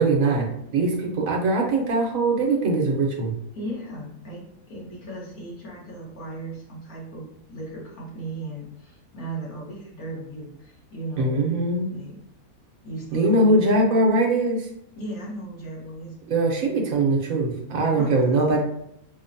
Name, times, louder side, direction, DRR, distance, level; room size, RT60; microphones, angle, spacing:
voice 1, 0.0-3.3 11.2-11.9 13.1-14.7 16.3-18.6, right 2 dB, 75° right, 0 dB, 1.1 m, -21 dB
voice 2, 3.5-11.5 11.9-12.2 12.8-13.8 15.0-16.1 17.9-18.6, right 1 dB, 90° left, -5 dB, 1.7 m, -36 dB
5.3 x 2.1 x 2.6 m, 0.76 s
omnidirectional pair, 1.5 m